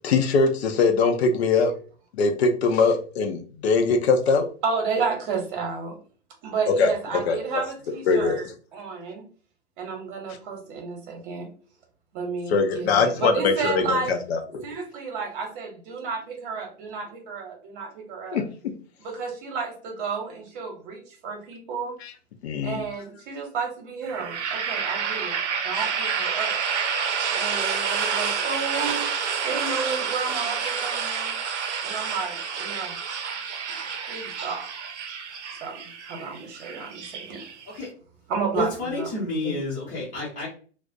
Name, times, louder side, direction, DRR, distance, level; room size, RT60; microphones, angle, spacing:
voice 1, 0.0-1.7 2.1-4.4 6.8-7.6 8.1-8.4 12.5-14.7 18.3-18.4 22.0-22.1 22.4-22.8, left 4 dB, 60° left, 5 dB, 0.6 m, -22 dB
voice 2, 4.6-6.0 6.4-8.5 8.7-9.3 9.8-11.5 12.1-14.2 14.6-18.4 19.0-22.0 22.6-26.6 27.3-29.1 29.4-31.3 31.8-33.0 33.7-33.8 34.1-34.7 35.6-37.4 38.3-39.6, right 5 dB, 45° right, 2 dB, 0.9 m, -32 dB
sound 1, 24.1-37.9, right 6 dB, 70° right, 0.6 m, -29 dB
voice 3, 38.5-40.5, left 2 dB, 20° left, -6 dB, 0.9 m, -29 dB
2.3 x 2.1 x 2.5 m, 0.40 s
hypercardioid pair, 110°, 36 cm